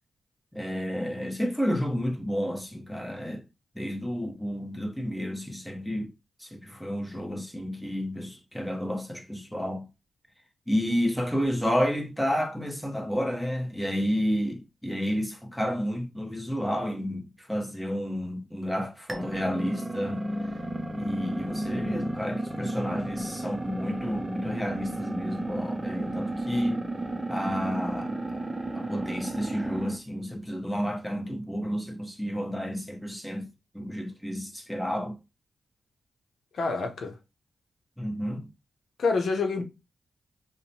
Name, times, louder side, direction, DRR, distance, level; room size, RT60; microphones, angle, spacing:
voice 1, 0.5-3.4 3.7-6.1 6.4-9.8 10.7-20.2 20.9-26.9 27.3-28.4 28.7-33.5 33.7-35.1 38.0-38.5, equal, 5° left, 0.8 m, -30 dB
sound 1, 19.1-30.0, right 1 dB, 20° right, 0.6 m, -33 dB
voice 2, 36.5-37.2 39.0-39.6, left 4 dB, 70° left, 0.6 m, -27 dB
2.7 x 2.1 x 2.7 m
cardioid pair, 60°, 0 cm